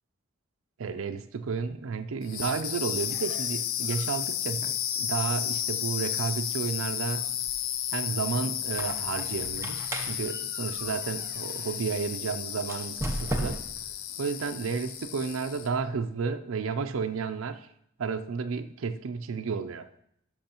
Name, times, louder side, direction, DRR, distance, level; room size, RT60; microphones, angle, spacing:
voice 1, 0.8-7.3 7.9-13.6 14.2-17.7 18.0-19.9, right 5 dB, 75° right, 8 dB, 0.4 m, -32 dB
sound 1, 2.2-15.8, left 10 dB, 80° left, 0.5 m, -33 dB
Squeak, 8.6-11.8 12.6-13.9, right 1 dB, 15° right, 0.6 m, -36 dB
12.0 x 6.1 x 2.9 m, 0.73 s
head